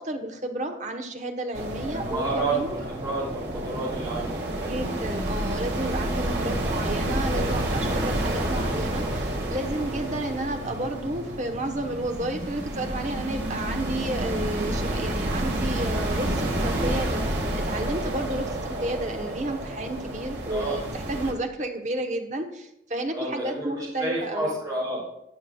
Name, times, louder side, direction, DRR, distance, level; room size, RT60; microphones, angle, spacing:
voice 1, 0.0-2.7 4.6-24.6, right 1 dB, 40° right, 5 dB, 1.0 m, -32 dB
sound 1, 1.5-21.3, right 1 dB, 70° right, 1.8 m, -29 dB
voice 2, 1.9-4.7 20.5-20.9 23.1-25.0, right 2 dB, 20° right, -6 dB, 2.8 m, -30 dB
14.5 x 8.6 x 2.3 m, 0.81 s
head